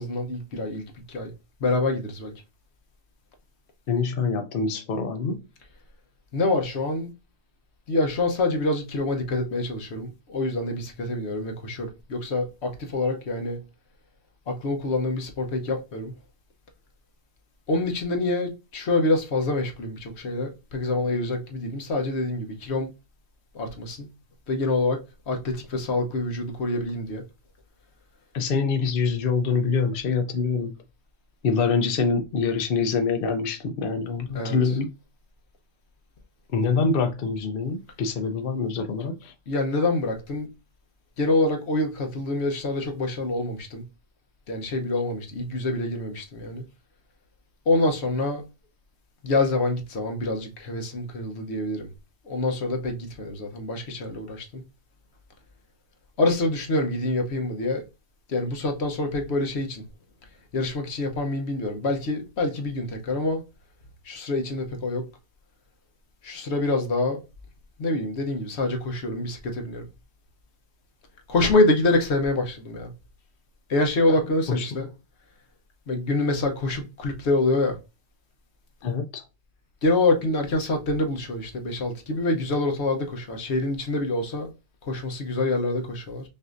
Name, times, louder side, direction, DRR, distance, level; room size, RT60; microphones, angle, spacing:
voice 1, 0.0-1.3 1.6-2.3 6.3-7.1 7.9-13.6 14.5-16.1 17.7-22.9 23.5-24.1 24.5-25.0 25.3-27.2 34.3-34.7 39.5-40.5 41.2-43.8 44.5-46.6 47.7-48.4 49.2-51.9 52.3-54.6 56.2-57.8 58.3-59.8 60.5-63.4 64.0-65.0 66.2-67.2 67.8-69.8 71.3-72.9 73.7-74.9 75.9-77.8 79.8-84.5 84.8-86.2, left 2 dB, 85° left, 1.2 m, -26 dB
voice 2, 3.9-5.4 28.3-30.7 31.4-34.9 36.5-39.3 74.5-74.8 78.8-79.2, left 5 dB, 60° left, 0.8 m, -25 dB
5.5 x 2.7 x 2.5 m
omnidirectional pair, 1.1 m